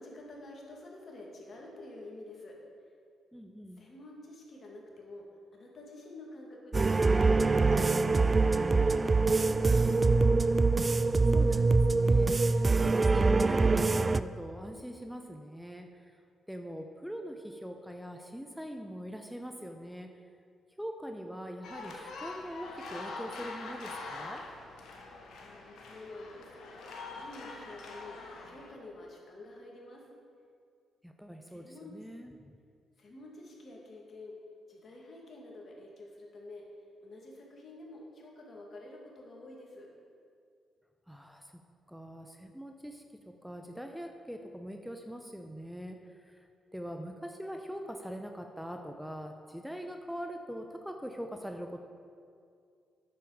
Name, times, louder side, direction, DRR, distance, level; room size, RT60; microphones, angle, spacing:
voice 1, 0.0-2.6 3.8-5.2 5.5-10.1 25.4-26.8 27.1-28.2 28.4-30.0 31.5-31.9 33.0-34.3 34.7-36.6 37.0-39.9, left 2 dB, 55° left, -1 dB, 2.1 m, -48 dB
voice 2, 3.3-3.8 10.8-16.1 16.5-20.1 20.8-24.4 31.0-32.5 41.1-41.5 41.9-51.8, equal, ahead, 5 dB, 0.7 m, -43 dB
sound 1, 6.7-14.2, right 3 dB, 35° right, 0.3 m, -24 dB
sound 2, 21.6-28.7, left 3 dB, 75° left, 1.2 m, -44 dB
9.2 x 6.8 x 4.9 m, 2.3 s
hypercardioid pair, 50°, 0 cm